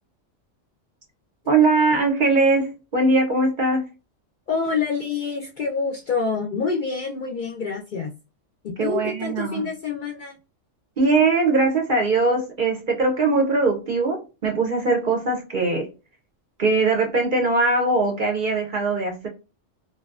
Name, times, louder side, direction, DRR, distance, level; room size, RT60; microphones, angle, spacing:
voice 1, 1.5-3.8 8.8-9.6 11.0-15.9 16.6-19.3, right 3 dB, 55° right, 0.6 m, -21 dB
voice 2, 4.5-8.1 8.6-10.4, left 5 dB, 60° left, 0.5 m, -27 dB
2.6 x 2.1 x 2.3 m
omnidirectional pair, 1.3 m